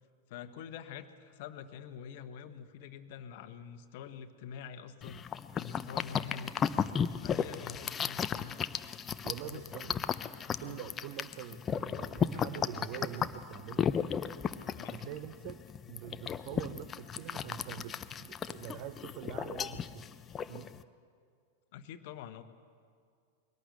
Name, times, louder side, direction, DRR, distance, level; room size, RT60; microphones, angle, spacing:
voice 1, 0.3-6.6 7.2-8.5 9.4-9.6 10.6-10.8 14.7-15.1 21.7-22.4, left 8 dB, 50° left, 11 dB, 1.2 m, -46 dB
sound 1, 5.0-20.8, left 7 dB, 25° left, 0.6 m, -35 dB
voice 2, 9.2-10.0 10.6-13.9 14.9-20.0 20.4-20.7, right 12 dB, 45° right, 12 dB, 0.7 m, -45 dB
22.0 x 17.5 x 8.1 m, 2.2 s
figure-of-eight pair, 90°, 0 cm